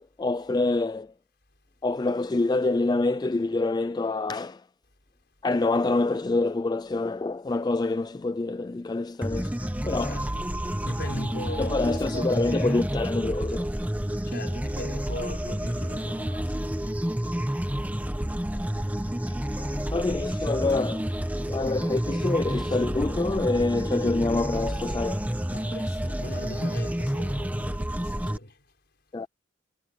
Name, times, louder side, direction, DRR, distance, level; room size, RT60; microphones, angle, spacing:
voice 1, 0.2-1.1 1.8-4.6 5.4-9.6 9.8-10.2 11.6-13.7 19.6-25.3 29.1-29.3, left 2 dB, 20° left, 0.3 m, -26 dB
sound 1, 9.2-28.4, equal, 10° right, 1.0 m, -29 dB
voice 2, 9.6-10.5 10.8-12.9 14.3-17.0 25.5-28.6, left 1 dB, 55° left, 5.8 m, -40 dB
head